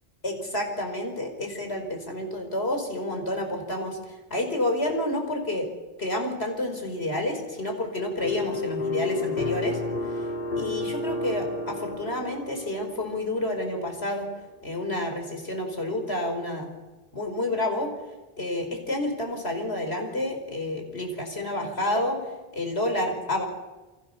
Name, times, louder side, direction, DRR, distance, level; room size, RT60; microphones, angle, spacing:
voice 1, 0.2-5.7 6.0-10.3 10.6-14.3 14.6-16.7 17.1-17.9 18.4-22.2 22.5-23.5, left 1 dB, 80° left, 4 dB, 5.0 m, -29 dB
sound 1, 8.2-13.4, left 3 dB, 60° left, 2.5 m, -31 dB
28.5 x 22.0 x 7.0 m, 1.2 s
omnidirectional pair, 1.1 m